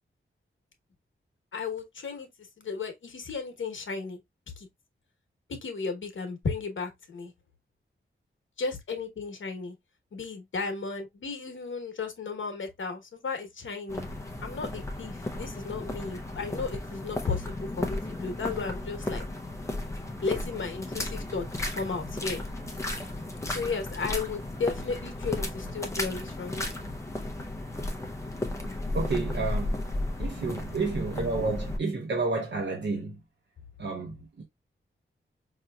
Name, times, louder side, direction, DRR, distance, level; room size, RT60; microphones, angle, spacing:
voice 1, 1.5-2.3 2.6-4.2 4.6-4.7 5.5-7.3 8.6-9.7 10.1-14.1 14.4-19.2 20.2-21.5 21.7-22.4 23.5-26.7, left 4 dB, 70° left, 1.1 m, -34 dB
sound 1, 13.9-31.8, left 1 dB, 15° left, 0.6 m, -34 dB
voice 2, 28.9-29.8 30.2-33.2 33.8-34.4, right 3 dB, 60° right, 1.0 m, -30 dB
5.1 x 2.9 x 2.3 m
wide cardioid pair, 180°, 21 cm